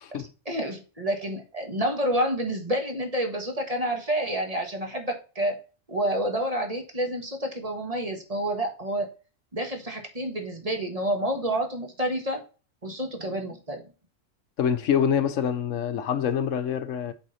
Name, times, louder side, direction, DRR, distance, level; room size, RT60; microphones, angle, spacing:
voice 1, 0.1-5.6 5.9-9.1 9.5-12.4 12.8-13.8, right 1 dB, 30° right, 1.7 m, -29 dB
voice 2, 14.6-17.1, left 8 dB, 75° left, 1.1 m, -25 dB
7.8 x 5.6 x 4.2 m
omnidirectional pair, 1.4 m